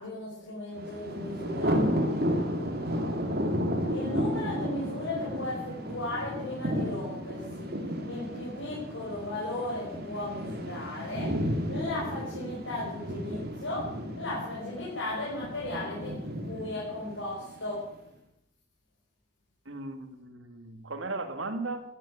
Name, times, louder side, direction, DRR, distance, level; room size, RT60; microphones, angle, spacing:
voice 1, 0.0-1.8 3.9-7.7 8.1-11.3 11.7-13.9 14.2-16.2 16.5-17.8, left 2 dB, 80° left, -7 dB, 5.9 m, -36 dB
Thunder, 0.8-17.8, equal, 50° right, 2.5 m, -33 dB
voice 2, 19.7-21.8, right 3 dB, 85° right, 8 dB, 2.0 m, -36 dB
14.5 x 10.5 x 8.6 m, 0.84 s
head